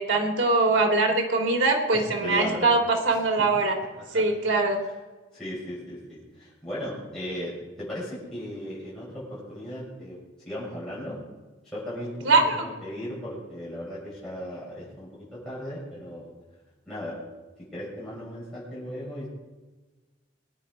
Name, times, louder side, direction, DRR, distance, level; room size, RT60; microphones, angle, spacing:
voice 1, 0.0-2.8 3.0-3.7 4.1-4.8 12.2-12.6, right 3 dB, 85° right, 2 dB, 3.1 m, -22 dB
voice 2, 1.9-2.7 3.1-3.6 4.0-4.2 4.8-4.9 5.3-10.2 10.4-11.2 11.7-16.3 16.9-17.2 17.7-19.3, equal, 5° left, -10 dB, 6.2 m, -37 dB
21.5 x 10.0 x 5.4 m, 1.2 s
head